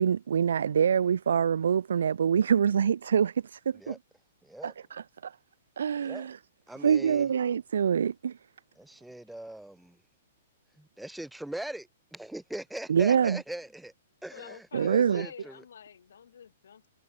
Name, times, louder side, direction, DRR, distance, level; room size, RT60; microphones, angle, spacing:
voice 1, 0.0-3.9 4.6-5.3 5.8-6.4 6.8-8.4 12.9-13.4 14.7-15.3, right 7 dB, 90° right, 0.9 m, -25 dB
voice 2, 4.4-4.7 6.0-6.3 6.7-7.3 8.8-10.0 10.8-13.9 14.2-15.6, right 1 dB, ahead, 0.5 m, -41 dB
voice 3, 14.3-16.9, left 8 dB, 80° left, 4.0 m, -49 dB
hypercardioid pair, 170°, 0 cm